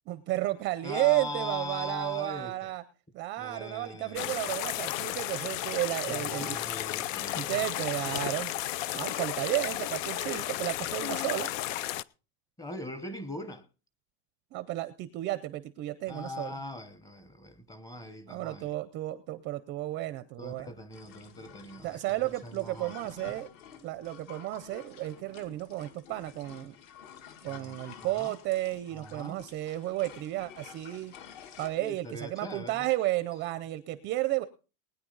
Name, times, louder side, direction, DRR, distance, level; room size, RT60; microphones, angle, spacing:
voice 1, 0.1-2.8 3.1-6.6 7.3-8.5 8.9-11.5 14.5-16.6 18.3-20.7 21.8-23.5 23.8-26.8 27.4-31.1 31.6-34.4, right 17 dB, 30° right, 0.5 m, -32 dB
voice 2, 0.8-2.7 3.4-4.3 6.1-7.7 12.6-13.7 16.1-18.7 20.4-23.2 27.5-28.3 28.9-29.4 31.7-32.9, left 1 dB, 10° left, 1.0 m, -41 dB
sound 1, 4.2-12.0, left 14 dB, 75° left, 0.7 m, -33 dB
sound 2, 20.9-31.7, left 8 dB, 50° left, 2.0 m, -50 dB
20.0 x 9.6 x 3.9 m
supercardioid pair, 160°, 40 cm